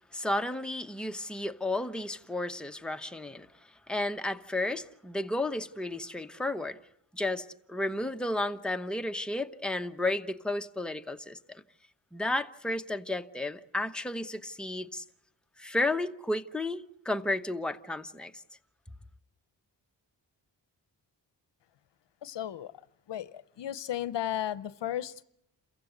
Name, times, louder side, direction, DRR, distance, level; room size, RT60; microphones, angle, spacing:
voice 1, 0.1-3.5 3.9-6.8 7.1-11.6 12.1-15.0 15.6-18.4, left 2 dB, ahead, 0.9 m, -32 dB
voice 2, 22.2-22.7 23.1-25.2, left 11 dB, 70° left, 0.8 m, -34 dB
28.0 x 15.5 x 8.0 m
cardioid pair, 65°, 44 cm